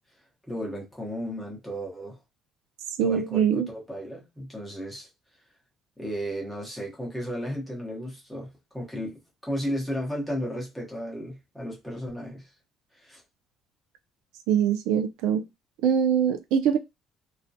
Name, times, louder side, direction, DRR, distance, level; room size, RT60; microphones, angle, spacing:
voice 1, 0.5-2.2 3.0-5.1 6.0-12.5 12.9-13.2, equal, ahead, 0.9 m, -34 dB
voice 2, 3.0-3.7 14.5-15.4 15.8-16.8, right 8 dB, 90° right, 0.4 m, -23 dB
2.3 x 2.1 x 2.6 m
cardioid pair, 150°, 0 cm